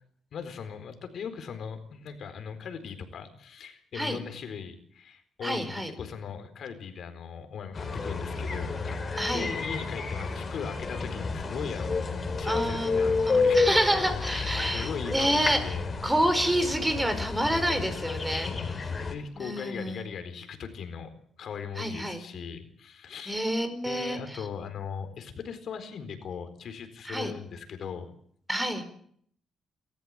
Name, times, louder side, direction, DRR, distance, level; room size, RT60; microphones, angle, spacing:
voice 1, 0.3-9.0 9.3-15.9 18.3-21.1 21.4-23.4 23.8-28.0, left 6 dB, 65° left, 8 dB, 4.2 m, -39 dB
voice 2, 5.4-5.9 9.2-9.5 12.4-15.8 16.0-18.5 19.3-20.0 21.8-22.2 23.3-24.4 27.1-27.3 28.5-28.8, right 1 dB, 10° right, 9 dB, 4.9 m, -28 dB
sound 1, 7.7-19.1, left 4 dB, 35° left, 4.7 m, -30 dB
29.0 x 14.0 x 8.9 m, 0.64 s
cardioid pair, 95°, 0 cm